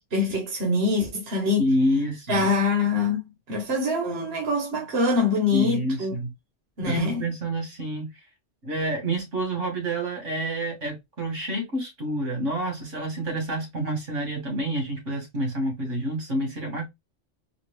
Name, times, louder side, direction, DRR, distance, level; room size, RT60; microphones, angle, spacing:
voice 1, 0.1-1.6 2.3-3.2 3.5-6.1 6.8-7.2, left 3 dB, 55° right, 1.5 m, -24 dB
voice 2, 1.6-2.5 5.5-6.3 6.9-8.1 8.6-16.9, right 1 dB, 80° right, 2.4 m, -28 dB
4.3 x 2.7 x 3.3 m
omnidirectional pair, 1.2 m